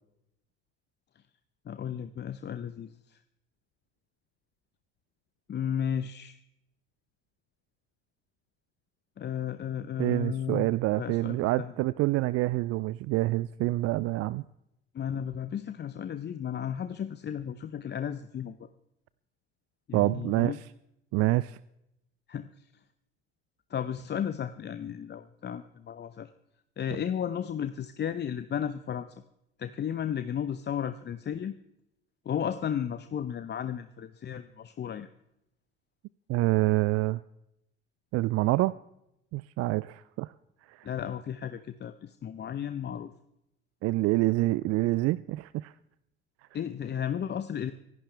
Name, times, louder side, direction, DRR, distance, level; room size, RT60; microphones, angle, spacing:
voice 1, 1.7-3.2 5.5-6.4 9.2-10.7 11.0-11.7 14.9-18.7 19.9-20.6 22.3-22.5 23.7-26.3 26.8-29.1 29.6-31.5 32.3-35.1 40.8-43.1 46.5-47.7, left 9 dB, 35° left, 11 dB, 0.8 m, -34 dB
voice 2, 10.0-14.4 19.9-20.6 21.1-21.6 36.3-37.2 38.1-38.7 39.3-40.3 40.7-40.9 43.8-45.7, right 18 dB, 55° right, 19 dB, 0.5 m, -27 dB
25.5 x 11.5 x 3.4 m, 0.82 s
figure-of-eight pair, 55°, 30 cm